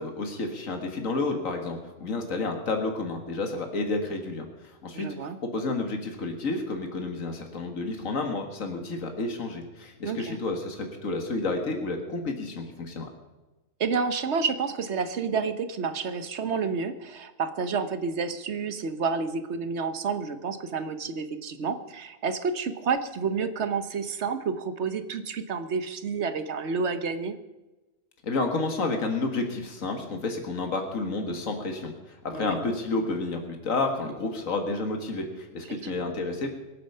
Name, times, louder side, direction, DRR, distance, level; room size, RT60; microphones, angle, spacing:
voice 1, 0.0-13.1 28.2-36.5, left 3 dB, 85° left, 4 dB, 2.1 m, -30 dB
voice 2, 4.9-5.4 10.0-10.4 13.8-27.3 32.3-32.6 35.8-36.1, right 5 dB, 60° right, 11 dB, 1.2 m, -30 dB
23.5 x 8.5 x 5.6 m, 1.1 s
omnidirectional pair, 1.3 m